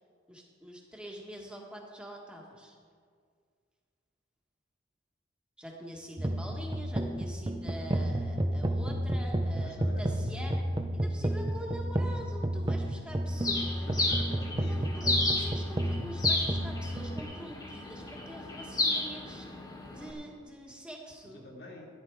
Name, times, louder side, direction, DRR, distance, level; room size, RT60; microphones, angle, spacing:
voice 1, 0.3-2.8 5.6-10.6 10.9-14.0 14.7-21.5, equal, 5° right, -1 dB, 1.6 m, -45 dB
sound 1, 6.2-17.2, right 1 dB, 20° right, 0.6 m, -31 dB
voice 2, 9.5-10.5 13.8-15.0 21.3-22.0, left 1 dB, 55° left, -1 dB, 2.1 m, -46 dB
Bird, 13.4-20.1, left 2 dB, 20° left, 1.6 m, -33 dB
13.5 x 10.5 x 4.8 m, 2.1 s
head